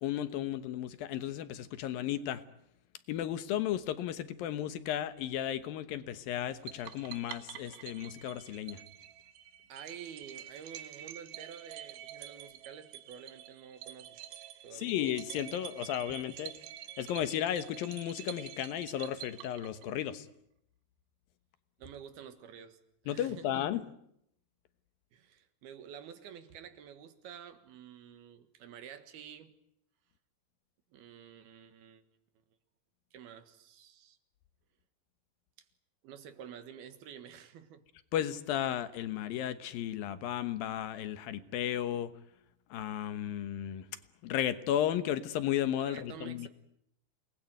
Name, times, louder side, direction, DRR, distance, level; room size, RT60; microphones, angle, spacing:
voice 1, 0.0-2.4 3.1-8.8 14.7-16.5 17.0-20.3 23.1-23.9 38.1-42.1 42.7-43.9 44.2-46.5, left 11 dB, 70° left, 12 dB, 2.7 m, -34 dB
sound 1, 6.7-20.1, right 12 dB, 90° right, 3.4 m, -48 dB
voice 2, 9.7-14.2 14.6-14.9 21.8-22.8 23.0-23.6 25.1-29.5 30.9-32.0 33.1-34.2 36.0-37.9 45.8-46.5, right 8 dB, 75° right, 9 dB, 3.5 m, -49 dB
29.0 x 20.0 x 9.4 m, 0.76 s
omnidirectional pair, 4.6 m